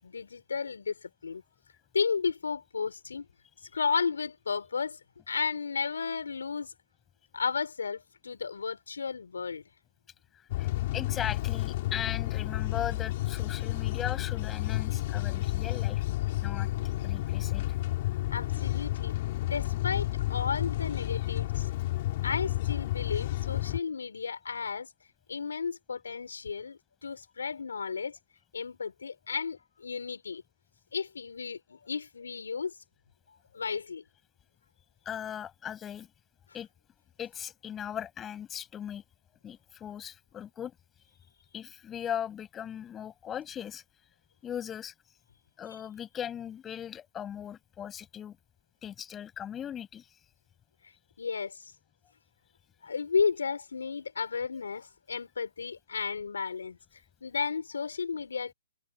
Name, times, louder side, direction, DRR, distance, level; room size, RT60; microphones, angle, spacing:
voice 1, 0.0-1.4 1.9-3.3 3.7-5.0 5.3-6.7 7.3-9.6 18.3-19.1 19.4-21.7 22.2-24.9 25.3-28.2 28.5-30.4 30.9-32.7 33.5-34.0 50.8-50.9 51.2-51.7 52.8-56.8 57.2-58.5, left 5 dB, 80° left, 6.9 m, -33 dB
sound 1, 10.5-23.8, left 16 dB, 40° left, 4.6 m, -31 dB
voice 2, 10.9-16.0 16.4-16.7 17.0-17.8 35.0-36.1 36.5-36.7 37.2-39.0 39.4-40.7 41.5-43.8 44.4-44.9 45.6-48.4 48.8-50.1, left 9 dB, 15° left, 8.0 m, -38 dB
hypercardioid pair, 145°, 0 cm